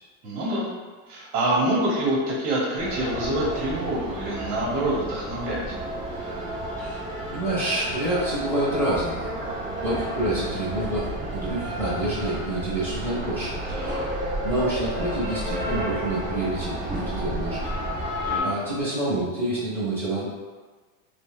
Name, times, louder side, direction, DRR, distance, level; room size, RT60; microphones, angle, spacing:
voice 1, 0.2-0.7 1.1-5.7 13.7-14.0 18.2-18.5, right 1 dB, 85° right, -4 dB, 1.1 m, -26 dB
sound 1, 2.8-18.4, right 1 dB, 20° right, 0.7 m, -31 dB
voice 2, 6.8-9.3 9.8-13.5 14.4-17.7 18.4-20.3, right 1 dB, 5° left, -11 dB, 0.9 m, -28 dB
2.8 x 2.6 x 2.2 m, 1.4 s
supercardioid pair, 150°, 45 cm